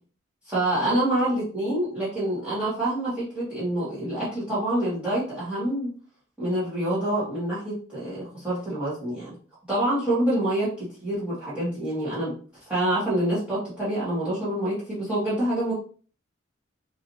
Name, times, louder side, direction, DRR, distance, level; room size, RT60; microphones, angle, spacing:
voice 1, 0.4-5.9 6.4-9.3 9.7-10.7 11.0-12.3 12.7-15.7, right 1 dB, 5° right, -11 dB, 1.7 m, -26 dB
4.7 x 2.8 x 3.1 m, 0.41 s
head